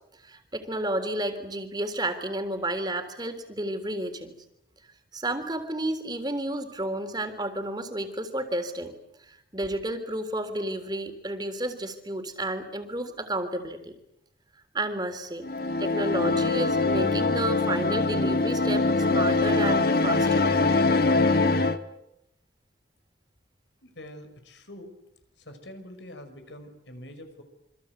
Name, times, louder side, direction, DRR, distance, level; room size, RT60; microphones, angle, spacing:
voice 1, 0.2-4.3 5.1-8.9 9.3-13.9 14.7-15.5 15.8-20.5, right 1 dB, 20° right, 8 dB, 3.6 m, -31 dB
sound 1, 15.4-21.8, left 3 dB, 55° left, 1.6 m, -23 dB
voice 2, 23.8-24.9 25.4-27.4, left 1 dB, 75° left, 7 dB, 6.0 m, -45 dB
27.5 x 25.5 x 8.2 m, 0.82 s
head